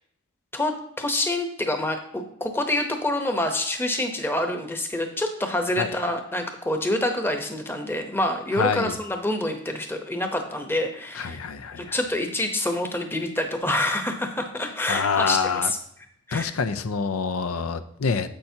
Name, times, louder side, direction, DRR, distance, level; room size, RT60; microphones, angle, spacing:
voice 1, 0.5-11.4 11.8-15.8 16.3-16.5, left 1 dB, 10° left, 5 dB, 0.8 m, -27 dB
voice 2, 8.6-9.0 11.2-12.0 14.9-15.7 16.3-18.3, left 5 dB, 90° left, 11 dB, 0.5 m, -26 dB
10.0 x 7.7 x 2.8 m, 0.71 s
head